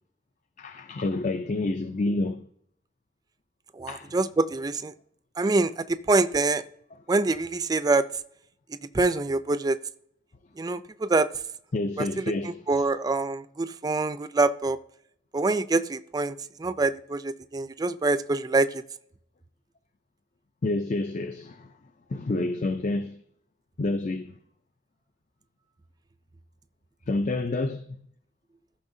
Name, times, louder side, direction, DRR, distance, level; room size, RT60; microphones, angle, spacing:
voice 1, 0.6-2.4 3.9-4.2 11.7-12.9 20.6-21.7 22.1-23.2 23.8-24.4 27.1-27.9, left 2 dB, 40° left, 0.5 m, -29 dB
voice 2, 3.8-4.9 5.4-6.6 7.1-8.1 8.9-9.8 10.6-11.3 12.0-14.8 15.3-18.8, right 3 dB, 20° right, 0.4 m, -25 dB
14.5 x 5.6 x 2.7 m
head